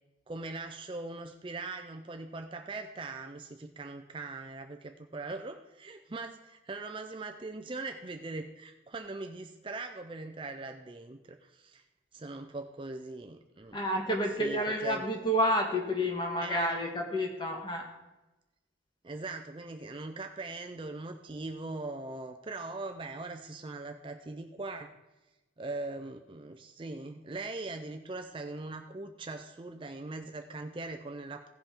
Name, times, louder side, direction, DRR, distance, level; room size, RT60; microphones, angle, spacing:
voice 1, 0.3-11.8 12.1-13.8 14.4-15.0 16.4-16.7 19.0-24.9 25.6-31.5, right 3 dB, 25° right, 6 dB, 0.4 m, -41 dB
voice 2, 13.7-17.9, equal, 25° left, 1 dB, 1.6 m, -29 dB
16.5 x 5.5 x 4.4 m, 1.0 s
head